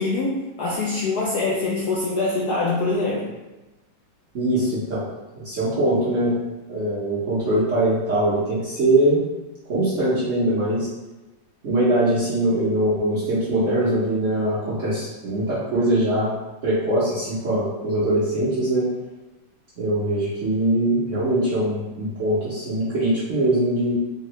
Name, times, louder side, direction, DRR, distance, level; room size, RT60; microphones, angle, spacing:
voice 1, 0.0-3.4, left 3 dB, 75° left, -5 dB, 0.9 m, -24 dB
voice 2, 4.3-5.1 5.4-6.3 6.7-9.2 9.7-10.9 11.6-16.3 16.6-18.9 19.8-23.9, right 1 dB, 55° right, -10 dB, 0.8 m, -22 dB
3.6 x 2.1 x 3.0 m, 1.1 s
omnidirectional pair, 2.1 m